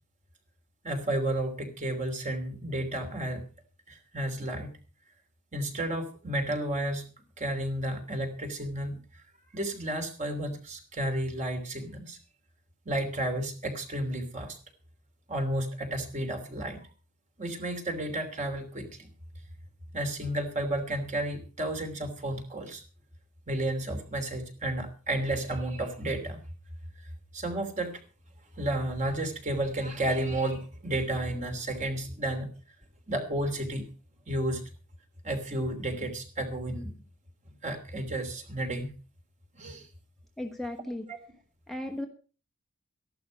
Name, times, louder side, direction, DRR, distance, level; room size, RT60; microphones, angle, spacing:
voice 1, 0.8-3.4 3.9-4.7 5.5-7.0 7.4-9.0 9.5-12.2 12.8-14.6 15.3-16.8 17.4-19.1 19.9-22.8 23.5-26.4 27.3-27.9 28.6-32.5 33.1-33.8 34.3-34.7 35.2-36.9 37.6-38.9 39.5-39.9 41.1-41.2, right 1 dB, 35° right, 5 dB, 3.0 m, -32 dB
voice 2, 40.4-41.0 41.7-42.1, left 1 dB, ahead, 3 dB, 1.1 m, -35 dB
14.5 x 11.5 x 5.1 m, 0.37 s
head